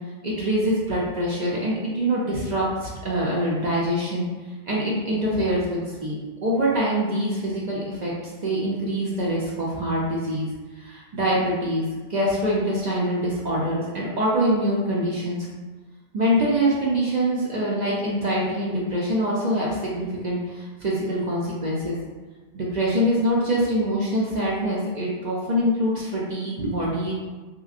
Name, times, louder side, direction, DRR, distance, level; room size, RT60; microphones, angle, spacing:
voice 1, 0.2-4.2 4.7-10.5 10.8-11.8 12.1-15.5 16.1-22.0 22.5-27.1, equal, 55° right, -5 dB, 0.5 m, -24 dB
3.4 x 2.9 x 2.4 m, 1.3 s
omnidirectional pair, 1.3 m